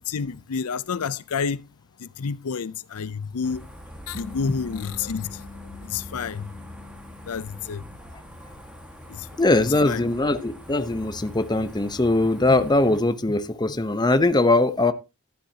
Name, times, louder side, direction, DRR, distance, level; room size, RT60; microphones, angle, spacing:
voice 1, 0.1-1.6 2.0-3.7 4.1-5.4 5.8-6.5 7.3-7.8 9.2-9.3 9.8-10.0, left 5 dB, 80° left, 0.5 m, -29 dB
sound 1, 3.4-13.0, equal, 5° right, 1.6 m, -43 dB
sound 2, 4.1-8.8, left 5 dB, 20° right, 1.4 m, -45 dB
voice 2, 9.4-14.9, left 2 dB, 20° left, 0.8 m, -21 dB
12.0 x 11.5 x 2.8 m
head